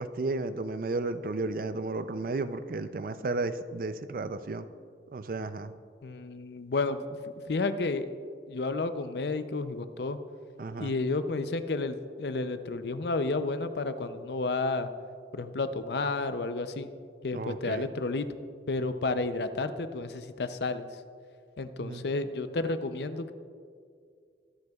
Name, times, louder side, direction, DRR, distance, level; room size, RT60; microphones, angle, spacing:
voice 1, 0.0-4.7 5.1-5.7 10.6-11.0 17.3-17.9 21.8-22.0, right 3 dB, 50° right, 12 dB, 0.4 m, -33 dB
voice 2, 6.0-8.1 8.5-10.2 10.8-14.9 15.3-16.9 17.2-18.3 18.7-20.9 21.6-23.3, left 3 dB, 70° left, 10 dB, 0.5 m, -31 dB
23.0 x 7.9 x 2.4 m, 2.2 s
head